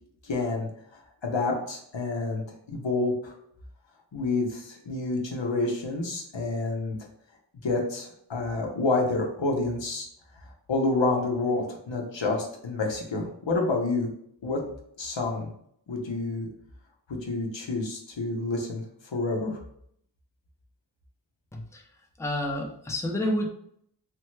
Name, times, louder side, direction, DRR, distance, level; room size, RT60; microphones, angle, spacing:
voice 1, 0.2-0.7 1.2-3.3 4.1-7.0 7.6-10.1 10.7-14.1 14.4-14.6 15.0-15.5 15.9-16.5 17.1-18.8 19.1-19.6, left 3 dB, 75° left, 1 dB, 0.7 m, -28 dB
voice 2, 21.5-21.8 22.2-23.5, left 1 dB, 5° left, 0 dB, 0.5 m, -29 dB
3.3 x 2.1 x 3.1 m, 0.69 s
wide cardioid pair, 40°, 45 cm